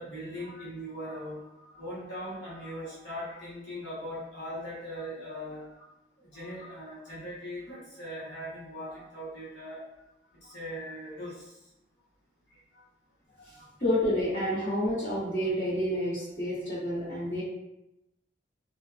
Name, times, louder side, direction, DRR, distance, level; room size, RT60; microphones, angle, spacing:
voice 1, 0.0-5.9 6.3-9.8 10.4-11.5 13.4-13.7, equal, 65° left, -10 dB, 1.0 m, -40 dB
voice 2, 13.8-17.4, equal, 40° left, -17 dB, 1.3 m, -29 dB
2.6 x 2.2 x 2.4 m, 0.91 s
head